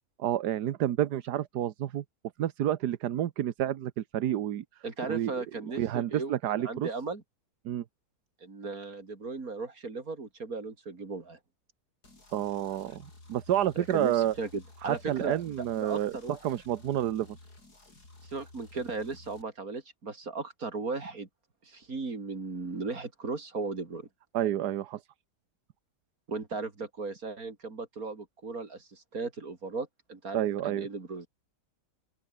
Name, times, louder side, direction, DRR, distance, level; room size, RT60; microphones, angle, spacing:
voice 1, 0.2-2.0 2.4-4.6 5.0-5.3 5.8-6.9 7.6-7.8 12.3-13.0 13.3-14.3 14.8-16.1 16.4-17.3 24.3-25.0 30.3-30.9, right 11 dB, 80° right, 1.5 m, -29 dB
voice 2, 4.8-7.2 8.4-11.4 13.8-15.4 15.8-16.4 18.2-21.3 21.6-24.1 26.3-31.3, right 3 dB, 60° right, 3.8 m, -37 dB
sound 1, 12.0-19.4, left 2 dB, 75° left, 6.8 m, -54 dB
open air
omnidirectional pair, 1.7 m